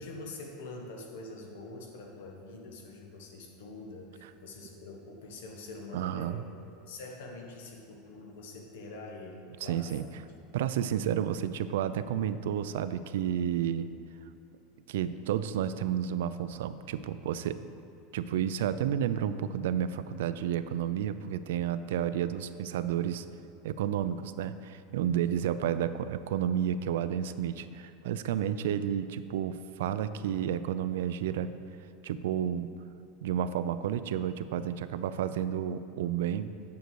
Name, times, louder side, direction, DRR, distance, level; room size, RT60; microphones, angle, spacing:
voice 1, 0.0-6.4 6.9-10.2 25.2-25.6, left 2 dB, 85° left, 1 dB, 1.5 m, -45 dB
voice 2, 5.9-6.4 9.6-10.1 10.5-13.9 14.9-17.6 18.1-23.3 23.6-31.5 32.0-32.7 33.2-36.5, right 9 dB, 90° right, 13 dB, 0.4 m, -31 dB
9.3 x 6.5 x 4.7 m, 2.5 s
supercardioid pair, 170°, 0 cm